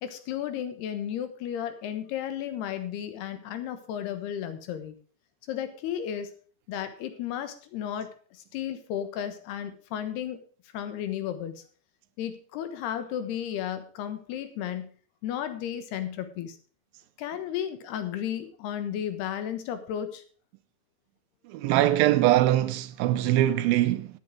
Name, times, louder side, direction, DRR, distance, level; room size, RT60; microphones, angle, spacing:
voice 1, 0.0-4.9 5.5-6.3 6.7-10.4 10.7-11.6 12.2-14.9 15.2-16.6 17.2-20.2, left 10 dB, 85° left, 3.4 m, -33 dB
voice 2, 21.5-24.1, right 14 dB, 80° right, 2.3 m, -22 dB
13.0 x 9.3 x 4.8 m
omnidirectional pair, 4.5 m